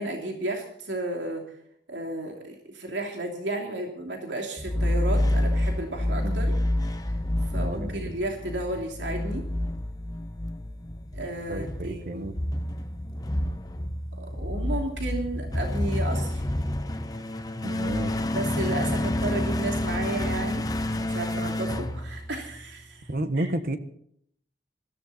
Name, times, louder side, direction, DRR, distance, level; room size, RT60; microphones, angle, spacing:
voice 1, 0.0-1.4 1.9-6.5 7.5-9.4 11.1-12.3 14.2-16.4 18.3-20.6 21.0-23.1 23.4-23.5, right 1 dB, 85° right, 2 dB, 2.9 m, -33 dB
sound 1, 4.6-22.7, left 1 dB, 20° left, 0.9 m, -29 dB
voice 2, 7.6-8.1 11.5-12.4 17.6-18.1 23.1-23.8, right 1 dB, 50° right, 10 dB, 1.3 m, -31 dB
21.5 x 15.0 x 4.2 m, 0.67 s
head